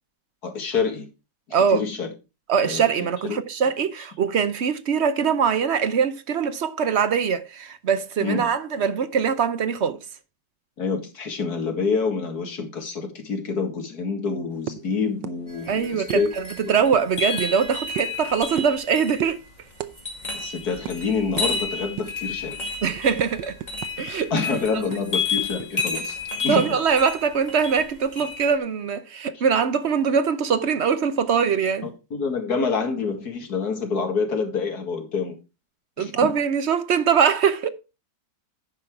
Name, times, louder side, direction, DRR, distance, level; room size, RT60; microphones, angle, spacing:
voice 1, 0.4-1.1 1.7-2.1 2.6-2.8 3.2-3.4 8.2-8.5 10.8-16.3 16.6-16.7 20.3-22.6 24.3-26.2 26.4-26.7 29.3-29.4 31.8-35.4 36.0-36.3, left 5 dB, 60° left, 2.4 m, -27 dB
voice 2, 1.5-1.8 2.5-10.0 15.7-19.4 22.8-23.6 24.0-24.3 26.4-31.9 36.0-37.7, right 6 dB, 55° right, 0.8 m, -22 dB
sound 1, 14.7-14.9 15.2-15.4 15.6-15.8 16.1-16.2 16.9-17.5 18.0-18.2 18.6-18.9 19.2-19.4 19.8-19.9 20.2-20.4 20.9-21.0 21.4-21.5 22.0-22.2 22.7-24.1 24.4-24.5 24.9-25.9, right 11 dB, 85° right, 1.4 m, -34 dB
sound 2, 15.5-28.6, left 4 dB, 25° left, 2.1 m, -32 dB
10.5 x 5.6 x 4.7 m
omnidirectional pair, 1.9 m